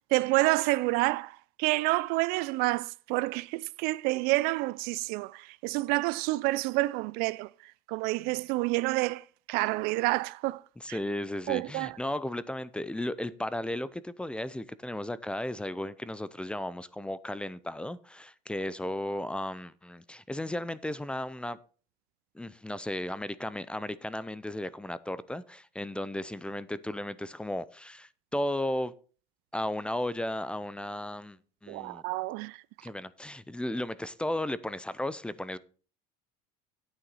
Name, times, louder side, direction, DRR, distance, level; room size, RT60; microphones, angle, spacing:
voice 1, 0.1-10.6 10.9-11.0 11.5-12.0 31.7-32.6, right 22 dB, 65° right, 0.4 m, -29 dB
voice 2, 10.8-21.6 22.3-28.9 29.5-32.0 32.8-35.6, left 1 dB, 5° left, 0.5 m, -35 dB
9.7 x 9.0 x 4.1 m
supercardioid pair, 105°, 17 cm